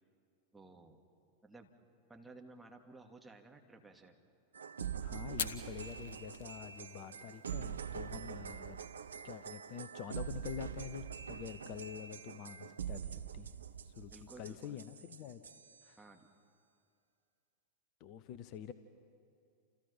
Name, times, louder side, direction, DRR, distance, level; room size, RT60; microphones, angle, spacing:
voice 1, 0.5-1.0 1.4-1.7 2.1-4.1 14.1-14.8 16.0-16.3, right 3 dB, 10° right, 2 dB, 2.7 m, -55 dB
sound 1, 4.5-15.9, right 8 dB, 70° right, 0.9 m, -44 dB
voice 2, 5.0-8.8 9.2-13.5 13.8-15.4 15.8-16.0 18.0-18.7, left 10 dB, 40° left, 12 dB, 1.1 m, -47 dB
Fire, 5.3-14.5, left 7 dB, 60° left, 1.3 m, -50 dB
30.0 x 29.0 x 5.9 m, 2.5 s
figure-of-eight pair, 90°, 0 cm